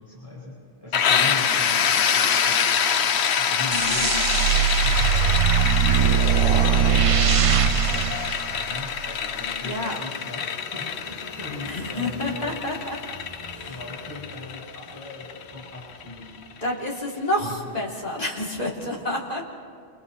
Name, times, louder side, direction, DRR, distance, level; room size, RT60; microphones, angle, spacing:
voice 1, 0.0-2.8 3.3-6.0 6.7-8.2 8.7-10.4 10.7-12.5 13.7-16.4, left 2 dB, 20° right, -10 dB, 6.7 m, -38 dB
sound 1, 0.9-16.5, left 7 dB, 90° left, 1.1 m, -26 dB
sound 2, 3.7-9.1, right 8 dB, 45° right, 0.5 m, -21 dB
sound 3, 4.6-16.5, left 2 dB, 85° right, 4.0 m, -46 dB
voice 2, 9.6-10.0 11.7-13.0 13.5-13.8 16.6-19.4, left 1 dB, 40° left, -3 dB, 3.1 m, -29 dB
30.0 x 28.5 x 3.2 m, 2.3 s
omnidirectional pair, 1.1 m